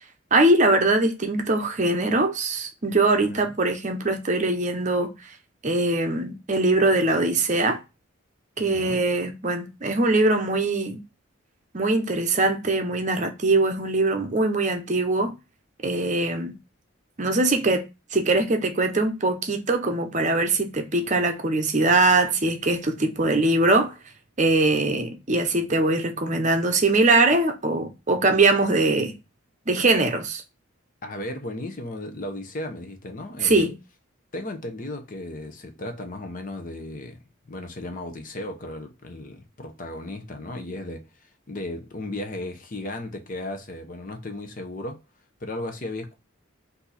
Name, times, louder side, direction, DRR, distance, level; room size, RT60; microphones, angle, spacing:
voice 1, 0.3-5.1 5.6-7.8 8.6-11.0 11.7-15.3 15.8-16.5 17.2-17.9 18.1-23.9 24.4-29.1 29.7-30.4 33.4-33.7, right 2 dB, 35° right, 0.7 m, -22 dB
voice 2, 3.2-3.5 8.6-9.0 31.0-33.6 34.3-37.2 37.5-45.0 45.4-46.2, left 1 dB, 40° left, 0.7 m, -35 dB
4.5 x 2.7 x 4.0 m
head